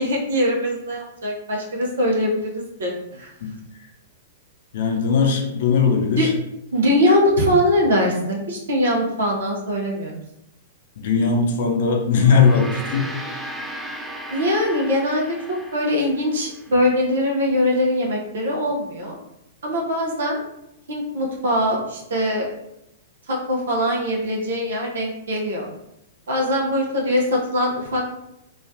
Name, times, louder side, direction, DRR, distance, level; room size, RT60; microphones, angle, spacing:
voice 1, 0.0-2.5 2.8-3.3 6.2-6.3 6.7-10.1 14.3-19.2 19.6-20.4 20.9-22.5 23.3-25.7 26.3-28.0, left 1 dB, 65° right, -2 dB, 0.6 m, -22 dB
voice 2, 4.7-6.3 11.0-13.0, left 5 dB, 55° left, 2 dB, 0.5 m, -19 dB
Gong, 12.1-16.8, right 1 dB, 5° right, 0.3 m, -35 dB
3.1 x 2.3 x 2.6 m, 0.84 s
figure-of-eight pair, 105°, 0 cm